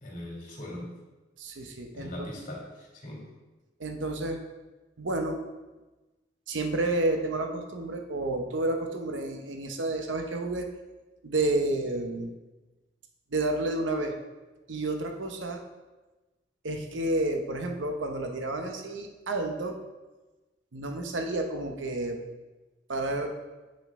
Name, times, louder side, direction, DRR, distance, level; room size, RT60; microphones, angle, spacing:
voice 1, 0.0-0.9 1.9-3.3, left 1 dB, 45° left, -3 dB, 2.2 m, -40 dB
voice 2, 1.4-2.3 3.8-4.4 5.0-5.4 6.5-10.7 11.2-12.3 13.3-14.1 14.7-15.6 16.6-19.8 20.7-22.2 22.9-23.3, right 2 dB, 85° right, 4 dB, 0.8 m, -30 dB
7.7 x 5.9 x 3.6 m, 1.1 s
head